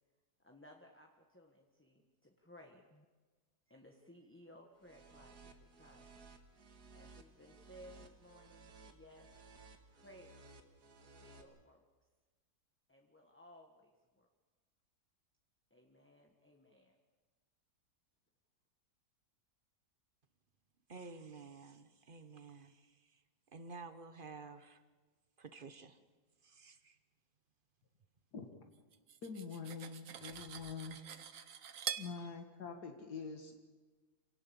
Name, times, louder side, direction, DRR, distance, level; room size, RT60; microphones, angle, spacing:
voice 1, 0.4-3.0 3.7-6.1 6.9-9.3 9.9-10.5 11.2-11.8 12.9-14.3 15.7-17.0, left 1 dB, 10° left, 1.4 m, -60 dB
sound 1, 4.8-11.4, right 3 dB, 80° right, 2.2 m, -58 dB
voice 2, 20.9-23.2 23.5-24.8 25.4-26.0 26.4-27.0 32.2-32.3, right 4 dB, 35° right, 1.1 m, -52 dB
Cutlery silverware, 28.9-32.1, right 9 dB, 60° right, 1.3 m, -45 dB
voice 3, 29.2-31.0 32.0-33.6, left 5 dB, 80° left, 2.2 m, -45 dB
27.0 x 17.5 x 7.1 m
omnidirectional pair, 1.7 m